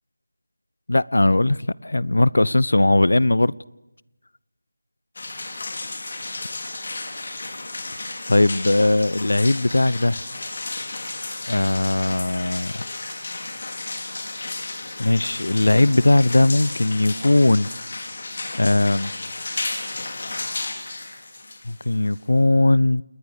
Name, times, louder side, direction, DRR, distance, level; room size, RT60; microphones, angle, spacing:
voice 1, 0.9-3.5 8.3-10.2 11.5-12.8 15.0-17.7 18.6-19.1 21.7-23.0, left 2 dB, 75° left, 0.8 m, -19 dB
sound 1, 5.1-22.4, left 2 dB, 50° left, 4.8 m, -33 dB
29.5 x 20.0 x 6.8 m
figure-of-eight pair, 170°, 0 cm